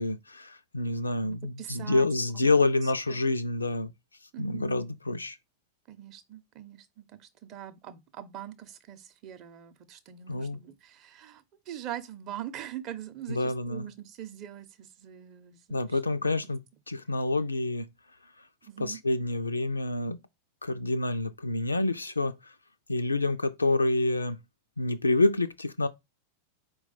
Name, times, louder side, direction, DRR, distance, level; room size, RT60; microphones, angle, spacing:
voice 1, 0.0-3.9 4.4-5.4 10.3-10.6 13.3-13.9 15.7-16.6 16.9-17.9 18.8-20.2 20.6-22.3 22.9-24.4 24.8-25.9, left 2 dB, 80° left, 0.3 m, -27 dB
voice 2, 1.6-2.1 2.3-2.4 3.1-3.2 4.3-4.7 5.9-16.3 18.6-19.0, right 11 dB, 40° right, 0.6 m, -42 dB
4.3 x 2.2 x 4.1 m
figure-of-eight pair, 90°, 0 cm